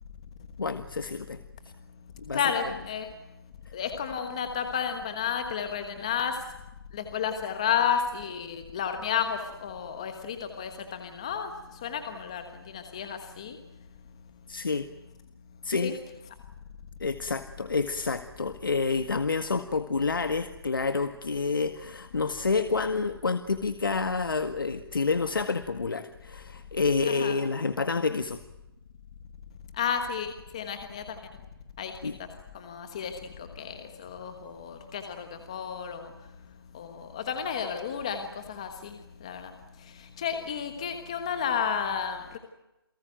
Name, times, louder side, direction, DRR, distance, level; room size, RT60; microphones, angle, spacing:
voice 1, 0.6-1.4 2.2-2.4 14.5-14.9 15.6-16.0 17.0-28.4 32.0-32.2, left 4 dB, 60° left, 9 dB, 1.8 m, -28 dB
voice 2, 2.3-3.1 3.7-6.4 6.9-13.6 15.8-15.9 27.1-27.4 29.7-31.2 31.8-31.9 32.5-33.1 33.4-36.1 36.7-39.5 39.8-42.4, left 7 dB, 15° left, 7 dB, 1.3 m, -32 dB
29.0 x 19.0 x 9.2 m, 0.95 s
hypercardioid pair, 175°, 13 cm